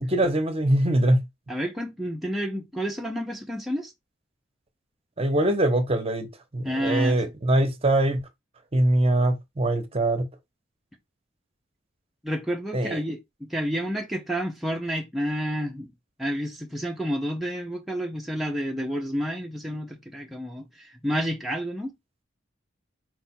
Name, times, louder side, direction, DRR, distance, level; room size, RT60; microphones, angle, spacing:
voice 1, 0.0-1.2 5.2-8.2 8.7-10.3 12.7-13.0, right 1 dB, 30° right, 0.7 m, -23 dB
voice 2, 1.5-3.9 6.6-7.2 12.2-15.9 16.2-21.9, equal, ahead, 0.5 m, -30 dB
4.5 x 2.4 x 4.3 m
head